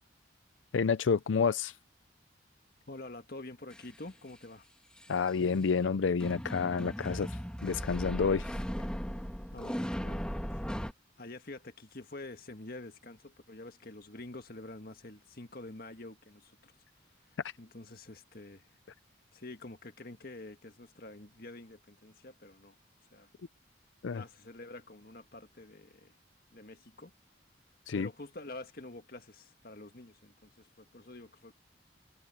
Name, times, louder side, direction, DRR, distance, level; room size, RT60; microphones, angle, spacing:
voice 1, 0.7-1.7 5.1-8.5 24.0-24.2 27.9-28.1, left 5 dB, 90° left, 0.5 m, -29 dB
voice 2, 2.9-4.7 9.5-10.7 11.2-16.7 17.3-18.7 19.3-22.8 23.1-23.3 24.1-26.1 26.5-27.1 27.9-31.5, left 2 dB, 50° left, 1.7 m, -47 dB
sound 1, 3.7-3.8 5.0-5.4 6.2-10.9, equal, 5° left, 2.1 m, -37 dB
head